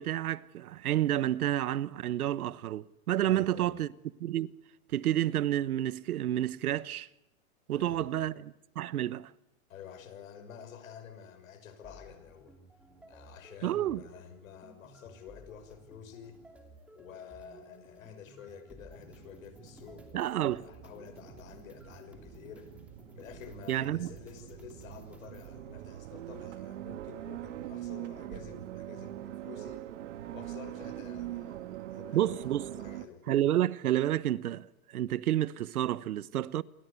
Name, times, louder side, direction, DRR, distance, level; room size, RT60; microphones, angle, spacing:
voice 1, 0.0-3.9 4.2-4.5 4.9-7.1 7.7-9.3 13.6-14.0 20.1-20.6 23.7-24.1 32.1-32.7 33.3-36.6, right 12 dB, 80° right, 1.2 m, -30 dB
voice 2, 3.2-3.8 7.8-8.3 9.7-12.5 13.1-16.4 16.9-22.7 23.1-29.9 30.3-33.2, left 8 dB, 65° left, 6.1 m, -50 dB
sound 1, 11.8-25.5, right 1 dB, 5° right, 2.7 m, -56 dB
sound 2, 18.9-33.1, right 13 dB, 55° right, 1.6 m, -43 dB
28.5 x 24.0 x 8.4 m
supercardioid pair, 170°, 43 cm